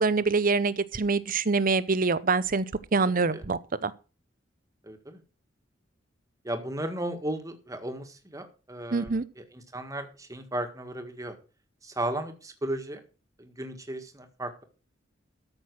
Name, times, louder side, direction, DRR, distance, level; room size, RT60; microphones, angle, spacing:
voice 1, 0.0-2.7 2.9-3.9 8.9-9.2, right 4 dB, 45° right, 0.7 m, -25 dB
voice 2, 3.0-3.4 4.8-5.2 6.4-11.3 11.8-13.0 13.4-14.6, right 1 dB, 15° right, 1.7 m, -35 dB
13.5 x 6.2 x 6.1 m
head